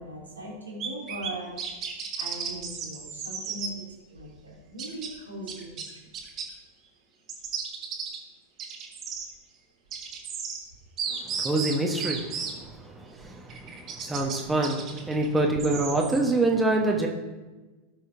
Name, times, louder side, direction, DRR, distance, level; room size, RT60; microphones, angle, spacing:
voice 1, 0.0-1.5 2.2-3.7 4.1-6.0, right 1 dB, 85° right, -5 dB, 3.1 m, -39 dB
sound 1, 0.8-1.3 1.6-3.7 4.8-5.1 5.5-6.5 7.3-8.2 8.6-9.3 9.9-10.6 11.0-12.5 13.5-14.4 14.6-16.2, right 6 dB, 35° right, 1.7 m, -34 dB
voice 2, 11.2-17.1, right 2 dB, 10° right, 0 dB, 1.2 m, -26 dB
17.5 x 6.4 x 2.8 m, 1.2 s
figure-of-eight pair, 90°, 0 cm